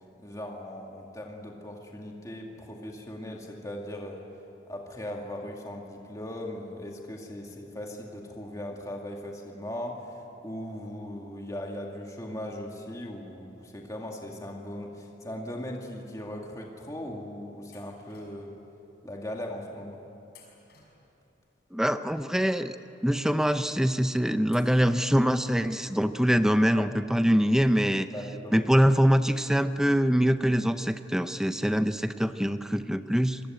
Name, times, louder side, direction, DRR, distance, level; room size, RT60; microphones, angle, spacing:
voice 1, 0.2-4.2 4.7-18.5 19.0-20.0 26.8-26.9 28.1-28.6, left 1 dB, 20° left, 0 dB, 2.2 m, -39 dB
sound 1, 17.7-18.6 20.3-21.4 24.5-25.4, left 5 dB, 55° left, 6.2 m, -57 dB
voice 2, 21.7-22.8 23.0-28.1 28.5-33.4, equal, 5° right, 10 dB, 0.6 m, -24 dB
27.0 x 21.5 x 9.3 m, 2.8 s
head